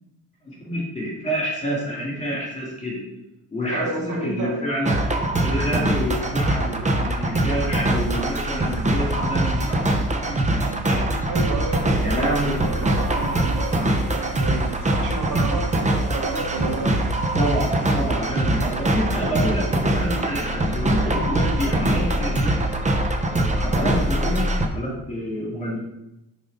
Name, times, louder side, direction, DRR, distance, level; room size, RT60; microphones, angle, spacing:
voice 1, 0.4-3.0 3.5-5.0 5.4-11.1 12.0-12.9 17.4-22.7 23.3-25.8, equal, 20° left, -3 dB, 2.4 m, -28 dB
voice 2, 3.7-4.6 11.3-16.9, right 2 dB, 55° right, -1 dB, 1.5 m, -31 dB
sound 1, 4.9-24.7, right 1 dB, 20° right, 0.6 m, -23 dB
6.8 x 3.8 x 5.3 m, 0.89 s
wide cardioid pair, 135°, 38 cm